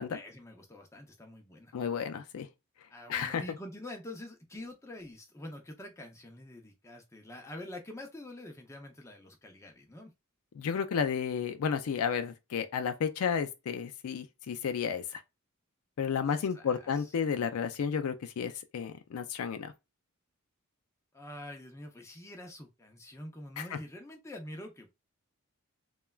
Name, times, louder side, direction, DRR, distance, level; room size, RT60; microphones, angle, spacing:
voice 1, 0.1-1.7 2.9-10.1 16.3-17.1 21.1-24.9, left 1 dB, 15° left, 0.5 m, -46 dB
voice 2, 1.7-2.5 3.1-3.4 10.6-15.2 16.0-19.7 23.6-23.8, left 6 dB, 75° left, 0.4 m, -32 dB
3.2 x 2.2 x 2.3 m
head